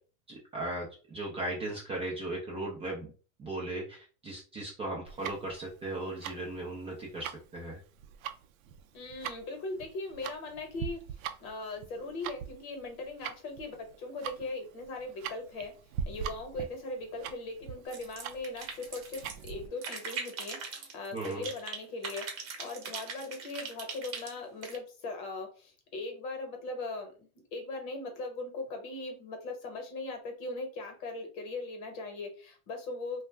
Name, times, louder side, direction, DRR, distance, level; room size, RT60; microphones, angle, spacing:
voice 1, 0.5-3.1 3.4-7.8 21.1-21.5, right 2 dB, 15° right, -3 dB, 0.4 m, -37 dB
Tick-tock, 5.0-19.7, right 8 dB, 75° right, 0.5 m, -42 dB
voice 2, 8.9-11.1 11.4-15.8 16.0-33.2, left 2 dB, 45° left, 4 dB, 1.0 m, -39 dB
sound 1, 17.9-19.5 19.8-21.8 22.0-24.8, right 5 dB, 35° right, 1.0 m, -40 dB
2.4 x 2.2 x 3.2 m, 0.37 s
supercardioid pair, 150°, 41 cm